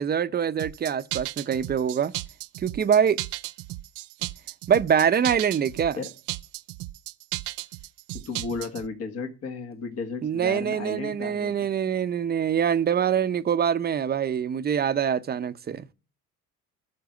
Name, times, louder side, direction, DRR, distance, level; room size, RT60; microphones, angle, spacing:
voice 1, 0.0-2.1 2.6-3.2 4.7-6.0 10.2-15.9, right 8 dB, 30° right, 0.7 m, -24 dB
sound 1, 0.6-8.9, right 19 dB, 80° right, 0.5 m, -35 dB
voice 2, 8.3-11.7, left 4 dB, 50° left, 1.7 m, -34 dB
13.0 x 4.7 x 8.1 m
cardioid pair, 110°, 30 cm